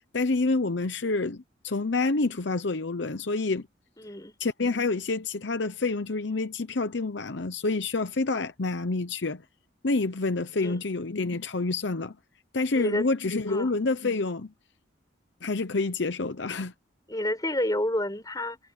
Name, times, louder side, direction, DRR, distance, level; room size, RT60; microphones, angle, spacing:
voice 1, 0.1-3.7 4.4-9.4 9.8-12.1 12.5-14.5 15.4-16.7, left 3 dB, 65° left, 0.8 m, -28 dB
voice 2, 4.0-4.3 10.6-10.9 12.7-13.1 13.5-13.7 17.1-18.6, left 1 dB, 20° left, 5.5 m, -29 dB
head